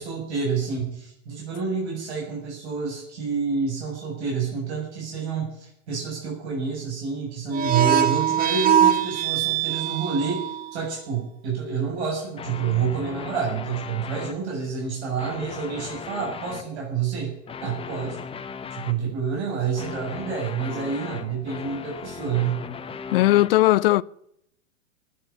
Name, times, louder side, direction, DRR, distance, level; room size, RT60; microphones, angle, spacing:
voice 1, 0.0-17.3 17.6-18.2 18.7-22.6, right 6 dB, 60° right, 7.5 m, -28 dB
sound 1, 7.5-10.8, right 10 dB, 25° right, 1.2 m, -22 dB
sound 2, 12.3-14.4 15.0-16.7 17.5-19.0 19.8-23.5, left 6 dB, 15° left, 1.1 m, -37 dB
voice 2, 23.1-24.0, left 16 dB, 50° left, 0.6 m, -18 dB
15.0 x 10.5 x 9.0 m
hypercardioid pair, 110°, 38 cm